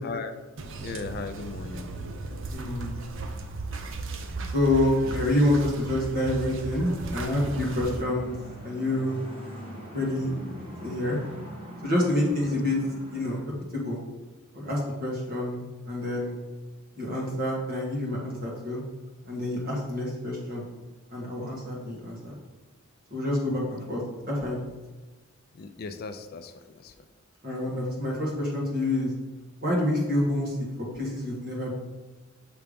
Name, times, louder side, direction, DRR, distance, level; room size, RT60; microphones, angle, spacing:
sound 1, 0.6-8.0, right 3 dB, 60° right, 0.6 m, -36 dB
voice 1, 0.8-1.9 2.2-2.3 5.0-5.3 11.8-11.9 12.4-12.6 25.5-27.1, left 4 dB, 45° left, 9 dB, 0.4 m, -38 dB
voice 2, 2.5-3.0 4.5-8.4 8.6-9.2 9.9-10.4 10.8-11.2 11.8-12.8 13.1-13.4 13.7-14.0 14.5-16.4 17.0-18.8 19.3-20.6 21.1-22.4 23.1-24.0 24.3-24.6 27.4-29.1 29.6-30.6 30.9-31.7, left 1 dB, 45° right, -3 dB, 1.8 m, -27 dB
sound 2, 4.0-13.4, equal, 25° right, 1.2 m, -44 dB
6.9 x 3.4 x 5.1 m, 1.2 s
head